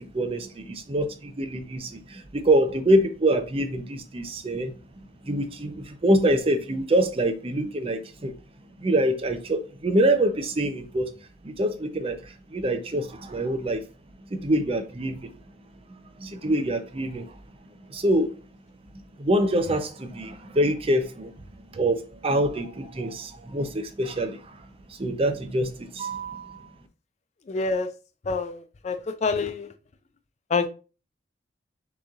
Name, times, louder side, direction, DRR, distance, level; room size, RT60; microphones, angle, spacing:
voice 1, 0.0-4.7 5.2-8.3 8.8-11.1 11.4-13.8 14.3-15.3 15.9-17.3 17.9-18.4 19.2-21.3 21.7-24.6 24.9-26.7, right 1 dB, 35° right, 0.6 m, -25 dB
voice 2, 27.5-27.9 28.2-29.7 30.5-30.7, left 4 dB, 40° left, 0.4 m, -27 dB
6.3 x 3.1 x 2.4 m
head